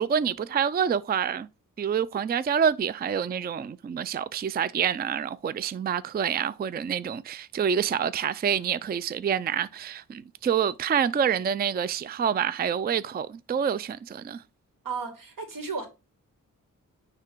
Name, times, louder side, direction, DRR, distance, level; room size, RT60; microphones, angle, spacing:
voice 1, 0.0-1.5 1.8-14.4, right 8 dB, 30° right, 0.4 m, -27 dB
voice 2, 14.8-15.9, right 5 dB, 80° right, 2.3 m, -33 dB
9.6 x 3.3 x 4.5 m
cardioid pair, 85°, 33 cm